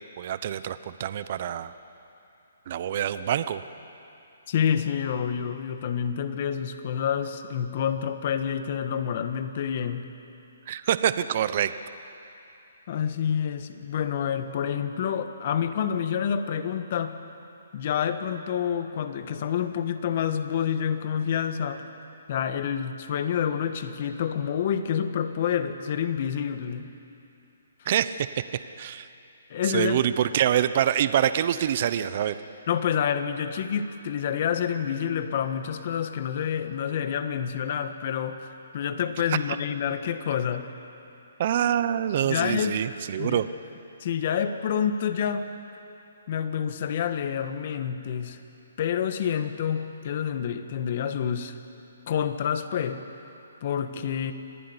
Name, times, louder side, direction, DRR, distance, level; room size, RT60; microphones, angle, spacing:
voice 1, 0.2-1.7 2.7-3.6 10.7-11.7 27.8-28.3 28.8-29.1 29.6-32.4 41.4-43.5, right 10 dB, 40° right, 13 dB, 0.8 m, -25 dB
voice 2, 4.5-10.1 12.9-17.2 17.7-21.8 22.3-26.9 29.5-30.0 32.7-40.7 42.3-42.8 43.2-43.4 44.0-45.5 46.3-48.4 48.8-51.5 52.1-53.0 53.6-54.3, left 8 dB, 40° left, 9 dB, 1.5 m, -28 dB
25.5 x 16.0 x 9.8 m, 2.8 s
hypercardioid pair, 160°, 0 cm